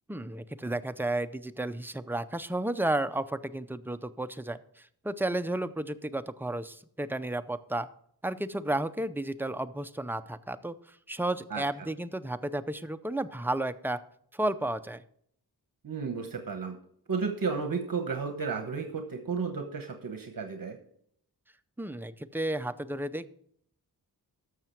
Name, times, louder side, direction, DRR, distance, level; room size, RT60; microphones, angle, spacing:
voice 1, 0.1-7.9 8.2-14.0 14.3-15.0 21.8-23.3, right 1 dB, 5° right, 11 dB, 0.5 m, -32 dB
voice 2, 15.8-16.8 17.1-20.8, right 5 dB, 55° right, 6 dB, 1.1 m, -33 dB
12.0 x 6.9 x 4.5 m, 0.67 s
wide cardioid pair, 85°, 40 cm